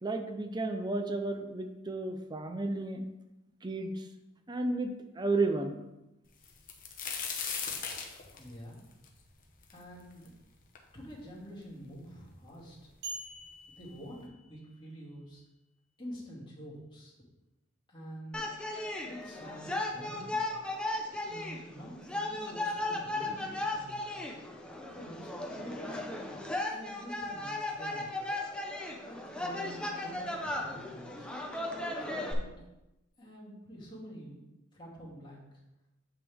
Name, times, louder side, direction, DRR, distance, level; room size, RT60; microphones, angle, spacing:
voice 1, 0.0-3.1 3.6-4.1 4.5-5.8, right 2 dB, 20° right, 6 dB, 0.6 m, -32 dB
sound 1, 6.4-10.3 10.8-10.9 11.6-11.7 12.0-12.6 13.5-13.6 14.0-14.2, left 6 dB, 45° left, 1.0 m, -38 dB
voice 2, 8.3-8.8 9.7-10.3 10.9-12.9 13.7-15.4 16.0-17.1 17.9-18.5 19.0-20.5 21.3-24.0 24.9-26.0 26.7-28.2 29.0-31.3 32.0-32.7 33.2-34.4 34.7-35.4, equal, 25° left, -6 dB, 2.4 m, -47 dB
sound 2, 13.0-14.9, right 2 dB, 55° right, 2.0 m, -45 dB
sound 3, 18.3-32.3, left 2 dB, 5° left, 0.8 m, -36 dB
8.1 x 5.9 x 3.6 m, 0.95 s
head